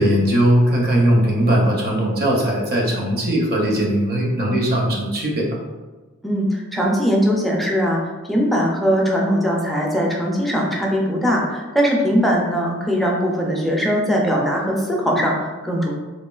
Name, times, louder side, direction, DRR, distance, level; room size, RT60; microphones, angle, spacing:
voice 1, 0.0-5.6, right 1 dB, 45° right, -2 dB, 0.6 m, -19 dB
voice 2, 6.2-8.0 8.3-15.9, equal, ahead, -3 dB, 0.4 m, -20 dB
3.0 x 2.4 x 2.3 m, 1.3 s
head